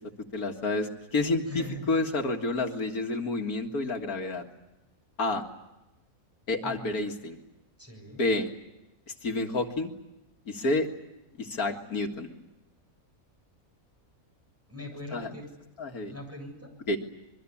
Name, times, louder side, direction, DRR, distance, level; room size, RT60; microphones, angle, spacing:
voice 1, 0.3-4.4 5.2-5.4 6.5-7.4 8.1-8.5 9.2-9.9 10.5-10.9 11.4-12.3 15.1-15.3 15.8-16.1 16.9-17.0, left 2 dB, 85° left, 4 dB, 2.4 m, -29 dB
voice 2, 1.4-1.9 6.6-6.9 7.8-8.2 14.7-15.5 16.1-16.7, left 1 dB, 10° right, 2 dB, 7.7 m, -41 dB
26.5 x 23.0 x 8.6 m, 0.95 s
omnidirectional pair, 1.5 m